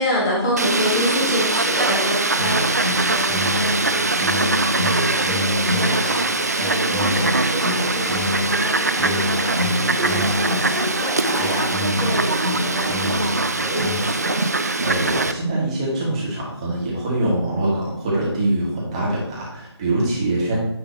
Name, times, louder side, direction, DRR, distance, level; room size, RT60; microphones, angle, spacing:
voice 1, 0.0-14.5, left 1 dB, 15° left, -4 dB, 1.1 m, -28 dB
Fowl, 0.6-15.3, right 3 dB, 35° right, 0.4 m, -22 dB
sound 1, 2.4-14.0, left 1 dB, 90° right, 2.3 m, -27 dB
voice 2, 14.4-20.6, right 1 dB, 15° right, -5 dB, 1.5 m, -24 dB
9.4 x 3.4 x 4.3 m, 0.78 s
figure-of-eight pair, 160°, 14 cm